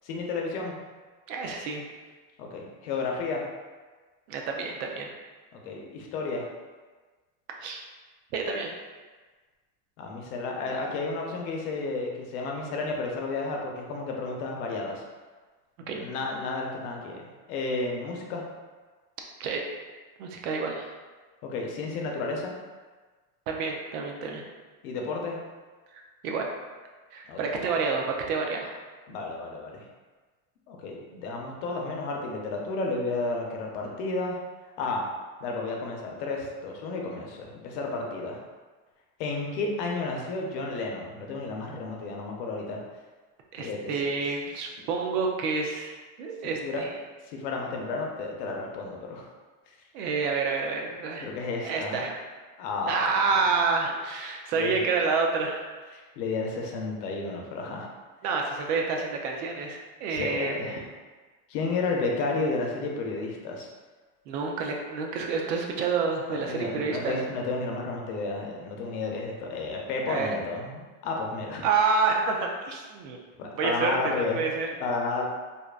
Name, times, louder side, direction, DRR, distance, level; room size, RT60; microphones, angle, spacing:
voice 1, 0.0-0.7 2.4-3.4 5.5-6.5 10.0-15.0 15.9-18.4 21.4-22.6 24.8-25.4 27.3-27.6 29.1-29.8 30.7-34.4 34.8-35.1 35.4-38.4 39.2-42.8 43.6-43.9 46.6-46.8 47.3-49.2 51.2-52.1 52.6-53.6 54.5-54.8 55.9-57.9 60.1-60.8 61.5-63.7 66.3-71.6 73.4-74.4 74.8-75.3, left 3 dB, 75° left, 0 dB, 0.7 m, -32 dB
voice 2, 1.3-1.8 4.3-5.1 7.6-7.8 8.3-8.7 15.9-16.0 19.4-19.6 20.2-20.9 23.5-24.4 25.9-26.5 27.1-28.8 43.5-45.9 46.2-46.9 49.9-51.3 51.6-52.2 52.9-55.7 58.2-60.6 64.3-67.2 70.1-70.4 71.6-73.2 73.6-74.7, right 4 dB, 80° right, 1 dB, 0.6 m, -28 dB
2.7 x 2.2 x 2.4 m, 1.3 s
supercardioid pair, 120°, 45 cm